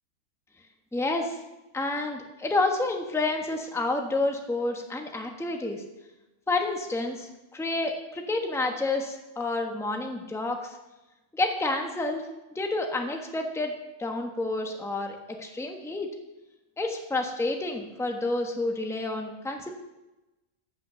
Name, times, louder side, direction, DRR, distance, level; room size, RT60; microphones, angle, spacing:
voice 1, 0.9-1.4 1.7-5.8 6.5-10.8 11.3-12.2 12.5-13.7 14.0-16.1 16.8-19.7, left 2 dB, ahead, 3 dB, 1.1 m, -29 dB
14.0 x 6.1 x 6.9 m, 1.0 s
omnidirectional pair, 1.5 m